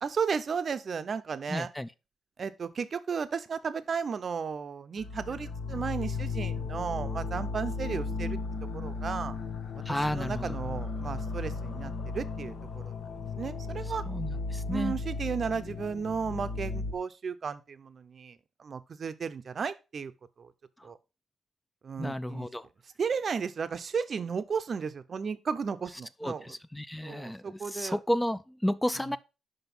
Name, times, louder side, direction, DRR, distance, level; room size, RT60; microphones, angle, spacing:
voice 1, 0.0-1.7 2.4-8.4 8.7-9.4 9.9-12.9 13.4-14.0 14.7-20.1 20.4-20.5 20.8-21.0 21.8-22.5 23.0-26.6 27.0-28.0 29.0-29.2, right 6 dB, 45° right, 0.6 m, -34 dB
voice 2, 1.5-1.9 9.9-10.6 14.1-14.9 22.0-22.7 26.2-29.2, left 1 dB, 5° left, 0.4 m, -32 dB
sound 1, 5.0-16.9, left 3 dB, 70° left, 1.1 m, -35 dB
6.0 x 5.3 x 5.4 m
cardioid pair, 120°, 0 cm